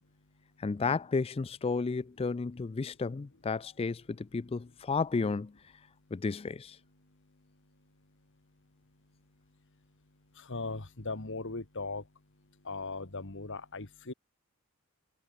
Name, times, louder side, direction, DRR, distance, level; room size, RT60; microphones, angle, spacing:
voice 1, 0.6-5.5 6.1-6.8, left 4 dB, 25° left, 0.4 m, -32 dB
voice 2, 10.5-12.0 12.7-14.1, left 3 dB, 60° left, 1.9 m, -38 dB
head